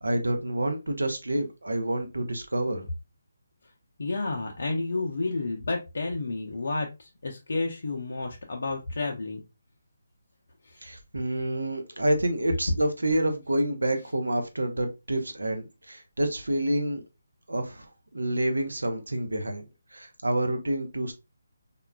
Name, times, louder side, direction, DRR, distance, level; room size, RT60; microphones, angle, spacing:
voice 1, 0.0-2.9 10.8-17.0 17.5-19.6 19.9-21.1, right 1 dB, 80° right, 0.6 m, -28 dB
voice 2, 4.0-9.4 10.6-10.8, left 3 dB, 65° left, 0.5 m, -31 dB
3.6 x 2.3 x 2.2 m
figure-of-eight pair, 150°, 0 cm